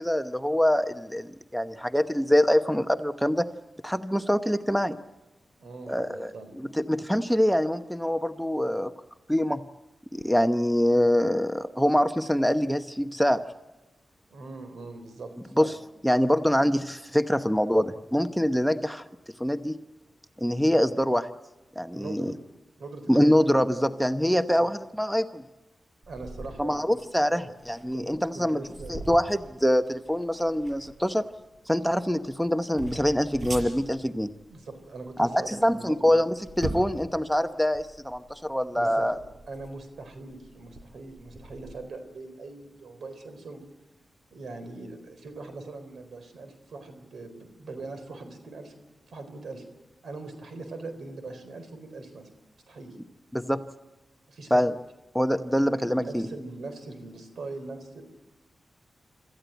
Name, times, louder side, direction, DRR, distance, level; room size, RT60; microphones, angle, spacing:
voice 1, 0.0-3.5 3.8-5.0 5.9-8.9 9.3-9.6 10.1-13.4 15.6-15.7 16.0-19.0 19.4-19.8 20.4-21.3 21.8-22.3 23.1-25.4 26.6-28.6 28.9-31.2 31.7-34.3 35.2-39.2 53.3-53.6 54.5-54.7 55.1-56.3, equal, ahead, 9 dB, 0.9 m, -24 dB
voice 2, 5.6-6.5 14.3-15.8 21.9-22.4 22.8-23.9 24.3-24.4 26.1-27.5 27.9-28.9 34.5-36.2 38.7-39.1 39.5-43.6 44.3-48.7 49.1-49.6 50.0-52.3 52.7-53.0 54.3-54.6 55.5-58.0, right 3 dB, 80° right, 8 dB, 4.2 m, -41 dB
sound 1, 26.0-41.8, right 2 dB, 50° right, 5.6 m, -43 dB
26.5 x 14.5 x 9.1 m, 1.0 s
cardioid pair, 65°, 0 cm